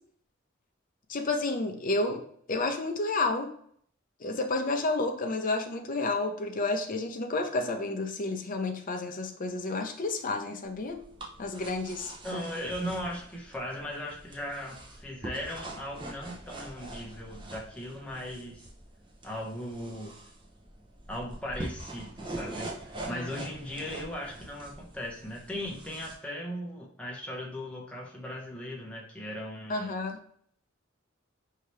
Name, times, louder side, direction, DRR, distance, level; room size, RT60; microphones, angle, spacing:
voice 1, 1.1-2.2 2.5-3.5 4.2-11.0 11.4-12.4 23.1-23.3 29.7-30.2, left 2 dB, 45° left, 4 dB, 0.6 m, -30 dB
sound 1, 10.6-26.1, right 2 dB, 25° right, 0.7 m, -44 dB
voice 2, 12.2-18.6 19.2-20.1 21.1-30.0, equal, 5° left, -3 dB, 0.9 m, -38 dB
4.8 x 2.8 x 3.2 m, 0.62 s
head